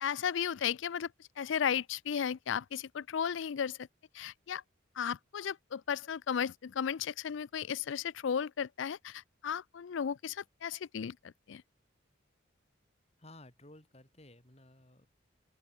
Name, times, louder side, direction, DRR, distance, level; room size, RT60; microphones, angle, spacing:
voice 1, 0.0-1.1 1.4-3.8 4.1-4.6 5.0-11.2 11.5-11.6, left 8 dB, 70° left, 0.4 m, -34 dB
voice 2, 13.2-15.1, left 1 dB, 30° left, 3.7 m, -55 dB
open air
head